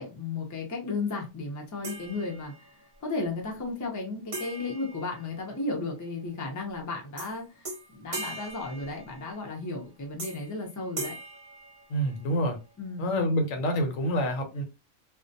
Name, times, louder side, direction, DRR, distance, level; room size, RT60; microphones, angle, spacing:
voice 1, 0.0-2.7 3.0-11.1 12.8-13.1, left 3 dB, 30° left, 0.3 m, -34 dB
sound 1, 1.8-2.8 4.3-5.9 7.2-7.3 7.6-9.5 10.2-10.6 11.0-12.4, right 2 dB, 45° right, 0.7 m, -40 dB
voice 2, 11.9-12.6 13.0-14.6, equal, 85° left, 1.1 m, -27 dB
2.4 x 2.1 x 2.6 m
omnidirectional pair, 1.3 m